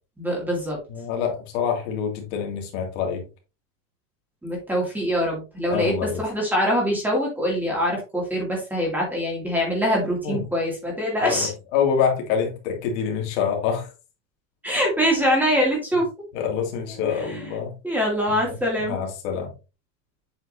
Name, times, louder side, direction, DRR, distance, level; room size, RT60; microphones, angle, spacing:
voice 1, 0.2-0.8 4.4-5.9 6.2-11.5 14.6-16.1 17.2-17.4 17.8-19.0, equal, 5° right, 2.4 m, -24 dB
voice 2, 0.9-3.3 5.7-6.2 10.2-10.4 11.2-13.9 16.3-17.8 18.5-19.5, left 7 dB, 60° left, 2.4 m, -26 dB
7.9 x 5.7 x 2.7 m
supercardioid pair, 170°, 38 cm